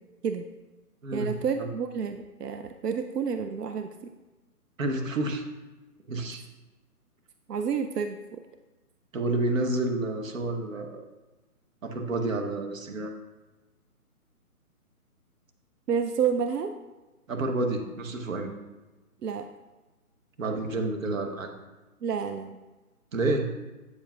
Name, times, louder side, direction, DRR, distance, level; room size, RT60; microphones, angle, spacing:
voice 1, 1.1-3.9 7.5-8.4 15.9-16.7 19.2-19.5 22.0-22.6, right 6 dB, 85° right, 7 dB, 0.6 m, -29 dB
voice 2, 4.8-5.4 6.1-6.4 9.1-11.0 11.8-13.1 17.3-18.5 20.4-21.5 23.1-23.4, right 2 dB, 60° right, 4 dB, 1.0 m, -29 dB
8.3 x 7.4 x 2.3 m, 1.1 s
hypercardioid pair, 170°, 46 cm